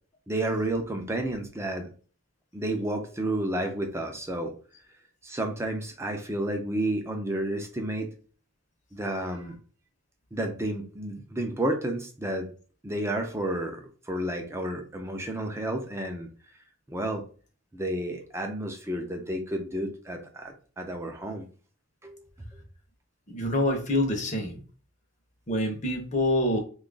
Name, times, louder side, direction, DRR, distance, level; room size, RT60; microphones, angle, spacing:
voice 1, 0.3-1.9 2.5-4.5 5.2-8.1 8.9-9.6 10.3-12.5 12.8-16.3 16.9-17.2 17.7-21.4 22.0-22.2, right 1 dB, 10° right, 4 dB, 0.5 m, -31 dB
voice 2, 23.3-24.6 25.5-26.6, left 1 dB, 35° left, 3 dB, 0.7 m, -26 dB
2.9 x 2.3 x 3.8 m, 0.39 s
head